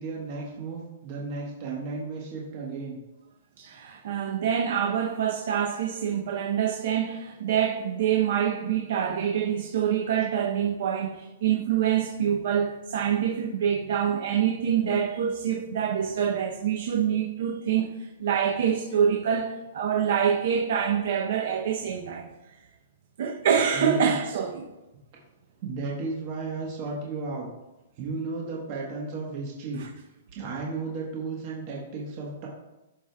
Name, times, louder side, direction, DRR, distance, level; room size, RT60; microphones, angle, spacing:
voice 1, 0.0-3.0 23.7-24.1 25.6-27.5 28.0-29.8 30.3-32.5, right 3 dB, 35° right, 1.2 m, -34 dB
voice 2, 3.6-17.9 18.2-22.3 23.2-24.7 29.8-29.9, right 8 dB, 60° right, 0.7 m, -26 dB
12.0 x 4.9 x 2.3 m
hypercardioid pair, 170°, 0 cm